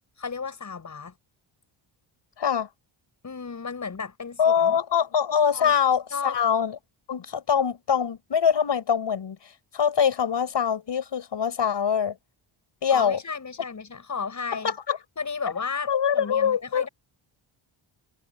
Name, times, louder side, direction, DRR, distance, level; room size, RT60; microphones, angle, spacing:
voice 1, 0.2-1.1 3.2-4.8 5.5-5.7 6.1-6.4 12.9-14.7 15.2-16.9, left 5 dB, 35° left, 5.8 m, -34 dB
voice 2, 2.4-2.7 4.4-6.8 7.1-9.4 9.7-12.2 12.8-13.2 14.6-15.0 15.9-16.9, left 7 dB, 55° left, 7.0 m, -23 dB
wide cardioid pair, 155°, 50 cm